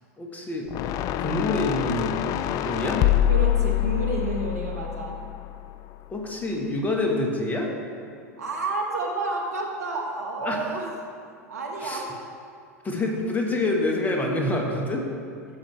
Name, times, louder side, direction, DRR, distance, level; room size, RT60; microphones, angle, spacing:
voice 1, 0.2-0.7 1.2-2.2 2.5-3.0 6.1-7.7 10.4-10.7 11.8-12.0 12.8-15.0, left 2 dB, 20° left, 0 dB, 1.7 m, -26 dB
sound 1, 0.7-5.9, left 13 dB, 45° left, 0.4 m, -25 dB
voice 2, 3.3-5.2 8.4-10.9 11.5-12.1, right 3 dB, 80° right, 0 dB, 1.6 m, -30 dB
15.5 x 6.1 x 3.5 m, 2.5 s
hypercardioid pair, 90°, 8 cm